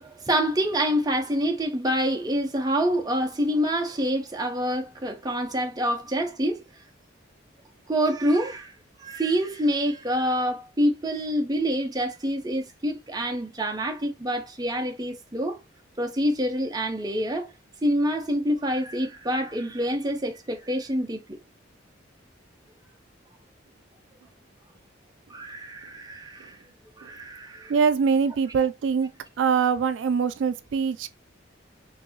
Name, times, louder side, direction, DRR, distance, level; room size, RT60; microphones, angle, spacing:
voice 1, 0.0-6.6 7.9-8.7 9.0-15.6 16.0-17.5 17.8-21.4 25.3-26.6 27.0-27.7, equal, 20° right, 0.6 m, -26 dB
voice 2, 27.7-29.1 29.4-31.2, right 6 dB, 75° right, 0.3 m, -23 dB
3.9 x 2.7 x 2.7 m
head